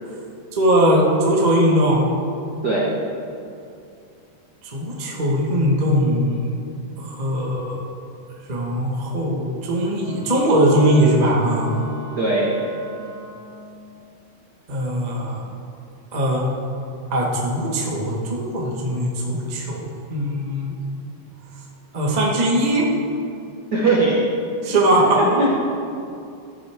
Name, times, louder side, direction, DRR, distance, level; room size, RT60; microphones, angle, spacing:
voice 1, 0.5-2.1 4.7-6.5 7.0-7.8 8.5-11.8 14.7-15.4 16.1-16.5 17.1-20.7 21.9-22.9 24.6-25.2, right 1 dB, 45° right, -3 dB, 0.5 m, -20 dB
Wind instrument woodwind instrument, 10.0-13.6, left 3 dB, 55° left, 3.6 m, -38 dB
voice 2, 12.2-12.5 23.7-24.2 25.2-25.5, right 2 dB, 70° right, -4 dB, 0.9 m, -19 dB
14.5 x 10.0 x 3.7 m, 2.5 s
omnidirectional pair, 3.8 m